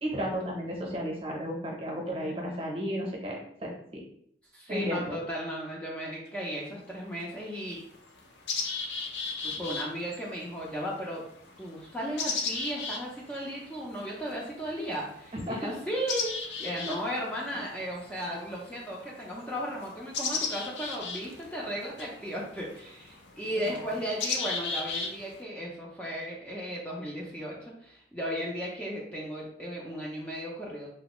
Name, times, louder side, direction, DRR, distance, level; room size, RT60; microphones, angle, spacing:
voice 1, 0.0-4.0 4.7-5.2 9.5-9.6 15.3-15.8 16.9-17.0 17.5-17.6 23.6-23.8, equal, 30° right, -1 dB, 0.7 m, -34 dB
voice 2, 2.1-2.8 4.5-7.8 9.4-11.2 11.6-16.3 16.6-30.9, equal, 10° left, -5 dB, 0.4 m, -35 dB
sound 1, 6.3-6.4 7.2-7.3 7.7-25.4, left 4 dB, 75° left, 0.5 m, -37 dB
3.1 x 2.5 x 3.0 m, 0.69 s
head